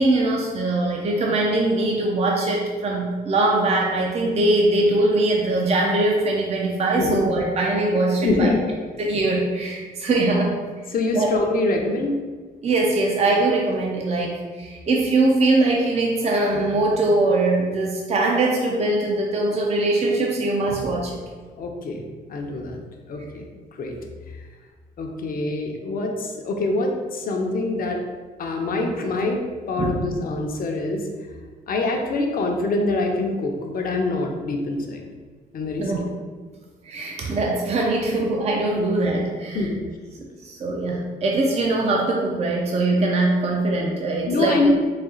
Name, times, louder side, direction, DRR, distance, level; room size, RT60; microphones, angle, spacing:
voice 1, 0.0-8.5 9.0-10.6 11.1-11.3 12.6-21.2 29.8-30.1 35.8-36.0 36.8-39.7 40.2-44.6, right 2 dB, 35° right, -1 dB, 0.5 m, -22 dB
voice 2, 8.2-8.6 10.9-12.1 21.5-22.0 22.3-22.8 23.1-23.5 23.8-24.0 25.0-28.0 28.4-31.0 31.7-35.0 35.5-35.9 39.5-39.8 44.3-44.7, left 2 dB, 55° left, 2 dB, 0.6 m, -24 dB
4.1 x 2.3 x 3.7 m, 1.5 s
cardioid pair, 95°, 18 cm